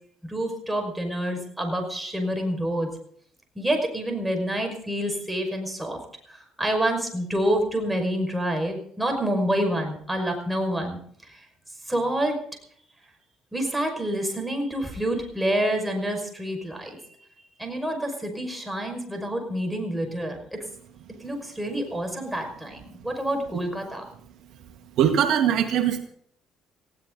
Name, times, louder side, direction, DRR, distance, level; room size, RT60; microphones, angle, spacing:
voice 1, 0.2-2.9 3.6-6.0 6.3-11.4 11.9-12.4 13.5-17.0 17.6-20.6 21.2-24.0, right 1 dB, 5° right, 3 dB, 5.6 m, -27 dB
voice 2, 25.0-26.0, right 9 dB, 70° right, 5 dB, 1.9 m, -21 dB
19.5 x 16.0 x 4.0 m, 0.63 s
cardioid pair, 100°, 0 cm